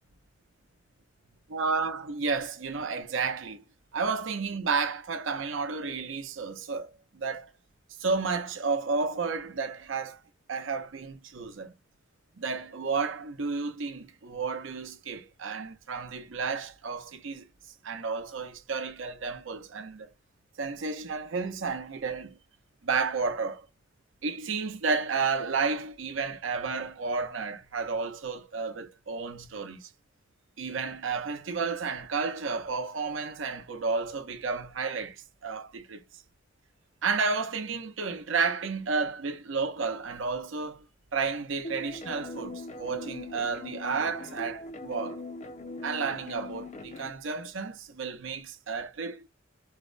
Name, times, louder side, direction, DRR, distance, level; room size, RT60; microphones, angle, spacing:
voice 1, 1.5-3.6 3.9-7.5 8.0-10.2 10.5-11.7 12.4-17.4 17.8-20.1 20.6-22.4 22.8-23.7 24.2-29.9 30.6-36.0 37.0-40.8 41.1-45.2 45.8-49.3, right 4 dB, 75° right, 0.7 m, -32 dB
sound 1, 41.6-47.1, left 2 dB, 35° left, 0.6 m, -41 dB
4.1 x 2.1 x 2.4 m
head